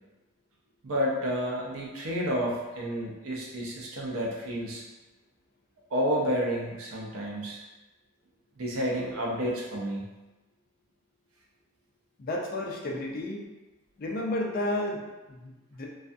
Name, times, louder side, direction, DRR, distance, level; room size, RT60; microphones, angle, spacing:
voice 1, 0.8-4.8 5.9-7.6 8.6-10.0, equal, 70° right, -3 dB, 0.6 m, -30 dB
voice 2, 12.2-13.5 14.0-15.9, left 1 dB, 40° left, -1 dB, 0.3 m, -32 dB
2.3 x 2.3 x 2.5 m, 1.1 s
head